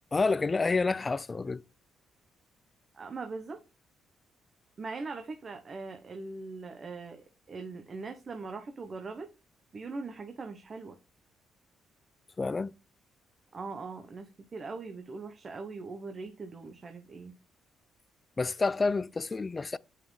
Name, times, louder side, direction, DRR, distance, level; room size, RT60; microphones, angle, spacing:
voice 1, 0.1-1.6 12.4-12.7 18.4-19.8, left 4 dB, 30° left, 0.3 m, -28 dB
voice 2, 2.9-3.6 4.8-9.3 9.7-11.0 13.5-17.3, right 4 dB, 40° right, 0.9 m, -41 dB
7.3 x 5.6 x 3.2 m
cardioid pair, 90°, 0 cm